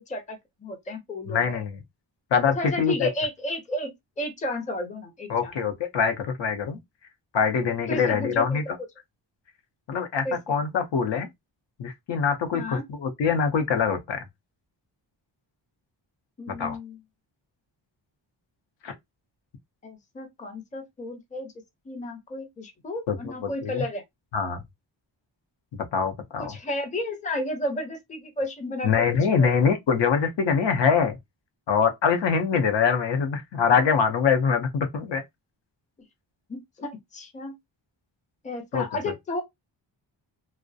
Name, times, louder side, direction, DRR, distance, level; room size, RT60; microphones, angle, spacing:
voice 1, 0.0-1.6 2.6-5.5 7.9-8.6 10.2-10.6 12.5-12.8 16.4-17.0 19.8-21.5 21.9-24.0 26.4-29.5 36.5-37.5 38.4-39.4, left 1 dB, 15° left, 0.5 m, -33 dB
voice 2, 1.3-1.8 2.3-3.1 5.3-6.8 7.3-8.6 9.9-11.3 11.8-14.2 16.5-16.8 18.8-18.9 23.1-23.8 24.3-24.6 25.9-26.6 28.8-31.2 31.7-35.2 38.7-38.8, left 6 dB, 65° left, 0.7 m, -24 dB
2.3 x 2.0 x 2.6 m
wide cardioid pair, 120°, 47 cm